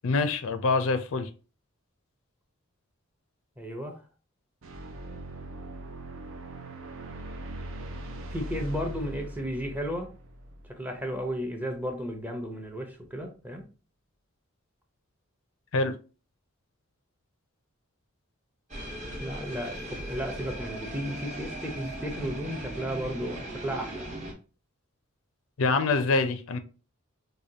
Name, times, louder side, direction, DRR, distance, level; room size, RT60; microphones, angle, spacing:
voice 1, 0.0-1.3 15.7-15.9 25.6-26.6, left 3 dB, 70° left, 10 dB, 0.5 m, -25 dB
voice 2, 3.6-4.0 8.3-10.1 10.7-13.6 19.2-24.0, equal, 10° right, 3 dB, 0.6 m, -34 dB
sound 1, 4.6-11.3, right 1 dB, 65° right, 0.6 m, -40 dB
sound 2, 18.7-24.3, right 1 dB, 35° right, 0.9 m, -38 dB
4.9 x 2.2 x 2.7 m, 0.34 s
head